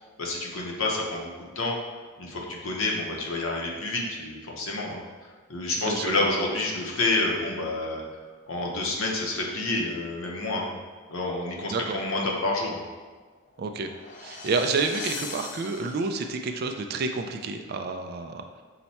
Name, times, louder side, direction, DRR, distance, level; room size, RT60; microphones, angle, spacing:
voice 1, 0.2-1.3 1.6-1.7 2.2-5.0 5.5-8.0 8.5-10.7 11.1-12.8, left 2 dB, 70° left, -1 dB, 0.8 m, -28 dB
voice 2, 5.9-6.3 11.7-12.0 13.6-13.9 14.2-18.4, right 4 dB, 45° right, 6 dB, 0.3 m, -29 dB
sound 1, 13.5-16.4, left 4 dB, 35° left, 0.3 m, -40 dB
5.7 x 2.2 x 4.1 m, 1.4 s
head